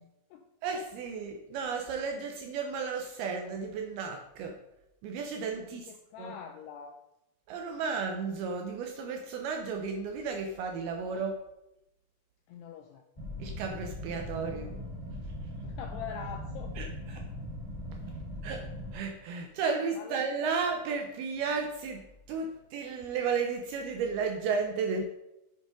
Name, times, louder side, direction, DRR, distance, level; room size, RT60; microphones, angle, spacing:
voice 1, 0.0-0.4 5.6-6.9 11.1-11.3 12.5-13.0 15.6-16.7 18.1-18.2 20.0-20.2, left 7 dB, 85° left, 5 dB, 2.4 m, -44 dB
voice 2, 0.6-4.6 5.0-5.9 6.2-6.4 7.5-11.3 13.4-14.8 16.8-17.2 18.4-18.7 18.9-25.0, right 5 dB, 90° right, 3 dB, 2.2 m, -33 dB
sound 1, 13.2-18.9, left 1 dB, 10° left, 3.3 m, -40 dB
8.3 x 7.9 x 5.2 m, 0.89 s
omnidirectional pair, 5.5 m